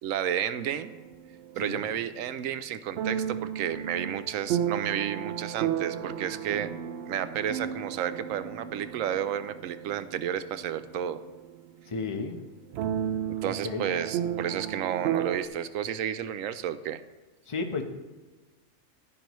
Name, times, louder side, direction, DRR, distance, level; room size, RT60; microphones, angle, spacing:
voice 1, 0.0-0.9 1.6-6.7 7.1-11.2 13.4-17.0, right 9 dB, 85° right, 12 dB, 1.0 m, -31 dB
sound 1, 0.7-2.0 3.0-11.7 12.1-12.2 12.7-15.5, right 9 dB, 65° right, 0.7 m, -33 dB
voice 2, 11.9-12.4 13.4-13.8 17.5-17.8, left 4 dB, 25° left, 5 dB, 0.8 m, -33 dB
11.5 x 9.9 x 3.1 m, 1.2 s
omnidirectional pair, 1.4 m